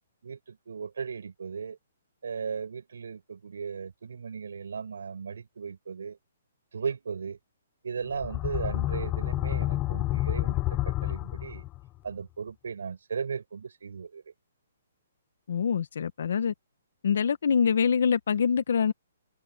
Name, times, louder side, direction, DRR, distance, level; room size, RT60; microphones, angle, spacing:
voice 1, 0.2-1.8 2.2-6.2 6.7-7.4 7.8-11.6 12.0-14.2, right 6 dB, 85° right, 7.0 m, -36 dB
sound 1, 8.1-11.9, left 17 dB, 15° left, 0.5 m, -29 dB
voice 2, 15.5-16.5 17.0-18.9, left 6 dB, 60° left, 1.3 m, -25 dB
hypercardioid pair, 170°, 0 cm